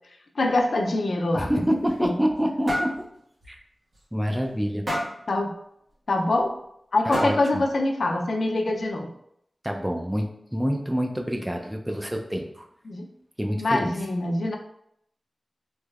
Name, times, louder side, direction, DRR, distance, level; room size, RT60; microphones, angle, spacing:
voice 1, 0.4-1.5 2.0-2.1 5.3-5.5 6.1-6.5 6.9-9.1 12.8-13.1 13.6-14.6, left 2 dB, 80° left, 2 dB, 0.4 m, -24 dB
voice 2, 1.3-2.9 3.5-3.6 4.1-4.9 7.1-7.6 9.6-12.7 13.4-13.9, equal, 5° right, 2 dB, 0.4 m, -27 dB
sound 1, 1.6-2.4 2.7-3.0 3.4-3.6 3.9-4.0 4.9-5.2 6.4-6.5 7.1-7.6, equal, 35° right, 1.3 m, -29 dB
3.4 x 3.1 x 2.3 m, 0.73 s
wide cardioid pair, 85°, 0 cm